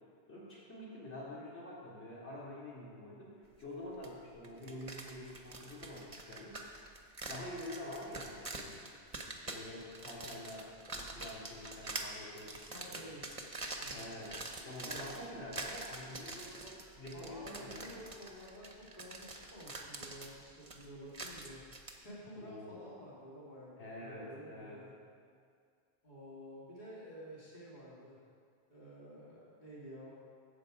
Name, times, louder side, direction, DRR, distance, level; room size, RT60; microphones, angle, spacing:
voice 1, 0.3-6.6 7.3-8.9 9.5-13.0 13.9-14.4 14.6-18.0 22.4-22.9 23.8-25.1, left 1 dB, 75° left, -7 dB, 2.8 m, -47 dB
sound 1, 4.0-4.1 4.4-22.0, right 2 dB, 30° right, 1.0 m, -45 dB
voice 2, 12.6-13.3 13.8-14.1 17.1-21.6 22.0-24.9 26.0-28.2 28.7-30.1, equal, 45° left, -7 dB, 2.5 m, -51 dB
15.5 x 6.9 x 5.0 m, 2.2 s
omnidirectional pair, 1.1 m